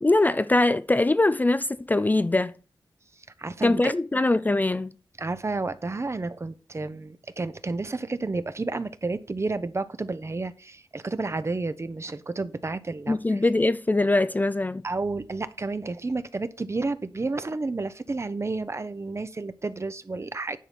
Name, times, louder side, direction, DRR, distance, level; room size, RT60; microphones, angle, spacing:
voice 1, 0.0-2.6 3.6-4.9 13.1-14.8, left 2 dB, 20° left, 0.4 m, -22 dB
voice 2, 3.4-3.9 5.2-13.5 14.8-20.6, right 3 dB, 35° right, 0.8 m, -31 dB
10.0 x 4.2 x 6.0 m
cardioid pair, 65°, 8 cm